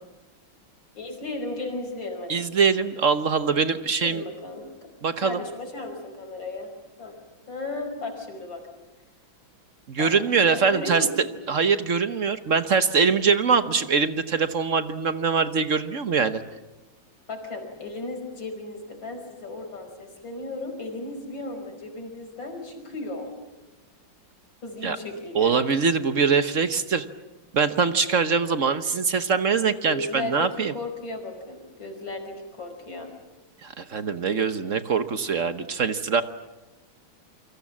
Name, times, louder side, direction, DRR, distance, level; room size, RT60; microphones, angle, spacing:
voice 1, 0.9-2.4 4.0-4.9 5.2-6.7 7.0-7.2 7.5-8.6 10.0-10.1 10.5-11.4 17.3-23.3 24.6-25.6 29.7-33.1, left 2 dB, 65° left, 5 dB, 5.8 m, -35 dB
voice 2, 2.3-4.2 5.0-5.4 9.9-11.0 11.5-16.4 24.8-25.0 25.3-27.0 27.5-30.7 33.6-36.2, right 5 dB, 50° right, 10 dB, 1.1 m, -23 dB
28.5 x 25.0 x 7.4 m, 1.1 s
omnidirectional pair, 2.2 m